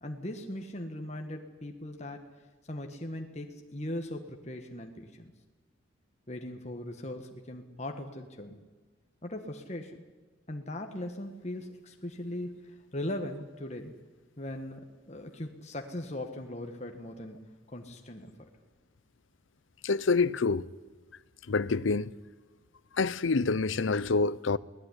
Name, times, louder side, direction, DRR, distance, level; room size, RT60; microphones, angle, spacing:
voice 1, 0.0-2.2 2.7-5.3 6.3-8.7 9.2-10.0 10.5-13.9 14.4-17.4 17.7-18.5, left 1 dB, 35° left, 1.7 m, -39 dB
voice 2, 19.8-20.7 21.5-22.1 22.9-24.6, left 4 dB, 75° left, 0.7 m, -27 dB
22.5 x 18.0 x 10.0 m
head